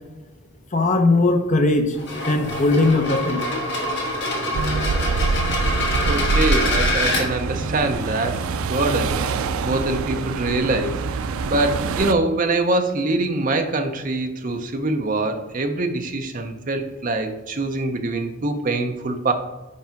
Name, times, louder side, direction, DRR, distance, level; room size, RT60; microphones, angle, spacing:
voice 1, 0.7-2.0 2.2-3.4, left 2 dB, 35° left, 6 dB, 0.7 m, -19 dB
sound 1, 1.9-7.2, left 1 dB, 55° left, 1.5 m, -25 dB
sound 2, 4.5-12.1, right 4 dB, 80° right, 0.4 m, -25 dB
voice 2, 6.0-9.2 9.6-11.0 11.5-19.3, right 2 dB, 40° right, 6 dB, 0.7 m, -24 dB
5.5 x 4.6 x 5.1 m, 1.1 s
head